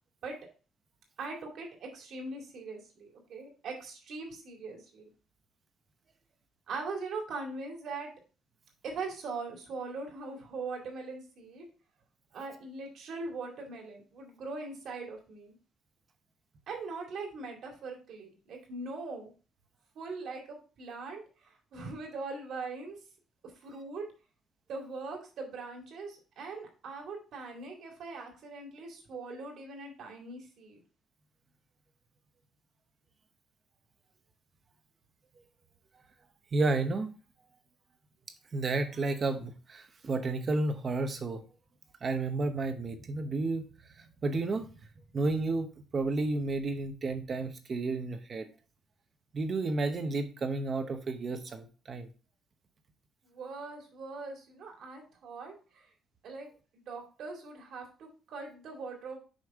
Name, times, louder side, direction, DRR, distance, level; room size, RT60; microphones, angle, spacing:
voice 1, 1.2-5.1 6.7-8.1 8.8-11.7 12.3-15.6 16.7-19.3 19.9-23.0 23.6-24.0 24.7-30.8 53.2-55.9 56.2-59.2, right 3 dB, 50° right, 1 dB, 2.3 m, -41 dB
voice 2, 36.5-37.1 38.5-41.4 42.0-43.6 44.0-44.7 45.1-48.5 49.3-52.1, right 3 dB, 25° right, 8 dB, 0.8 m, -31 dB
6.4 x 5.3 x 3.6 m, 0.35 s
cardioid pair, 180°, 0 cm